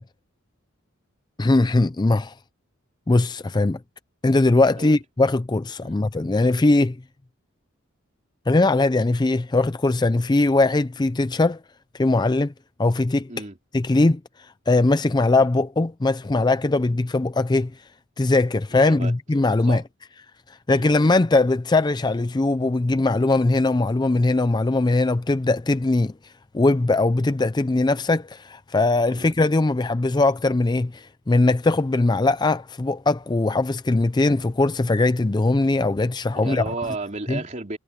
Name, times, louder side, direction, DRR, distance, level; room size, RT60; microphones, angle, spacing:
voice 1, 1.4-2.3 3.1-3.8 4.2-7.0 8.5-11.6 11.9-12.5 12.8-13.3 13.7-14.2 14.7-17.7 18.2-19.8 20.7-26.1 26.5-36.7 37.3-37.4, left 2 dB, 20° left, 0.4 m, -20 dB
voice 2, 18.7-19.1 19.7-19.8 20.7-20.9 29.1-29.4 36.3-37.8, right 3 dB, 35° right, 3.5 m, -33 dB
head